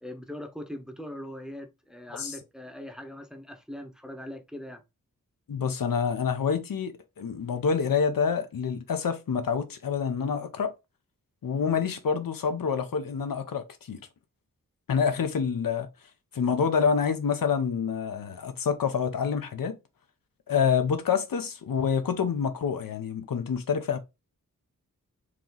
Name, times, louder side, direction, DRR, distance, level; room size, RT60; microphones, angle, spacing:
voice 1, 0.0-4.8, left 1 dB, ahead, 0.8 m, -41 dB
voice 2, 5.5-10.7 11.4-14.0 14.9-15.9 16.3-19.8 20.5-24.0, left 6 dB, 85° left, 0.8 m, -27 dB
4.6 x 3.0 x 3.9 m
wide cardioid pair, 120°, 33 cm